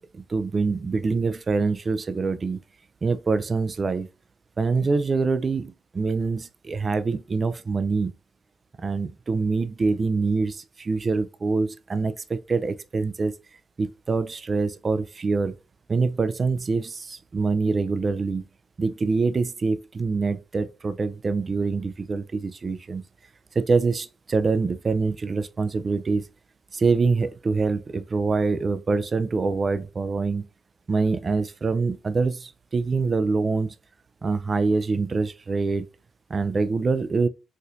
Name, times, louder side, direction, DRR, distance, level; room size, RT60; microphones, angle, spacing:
voice 1, 0.1-2.6 3.0-4.1 4.6-8.1 8.8-13.3 13.8-15.6 15.9-18.4 18.8-23.0 23.6-26.2 26.7-30.5 30.9-33.7 34.2-35.9 36.3-37.3, right 4 dB, 35° right, 0.3 m, -25 dB
4.2 x 2.6 x 2.4 m
cardioid pair, 90°, 0 cm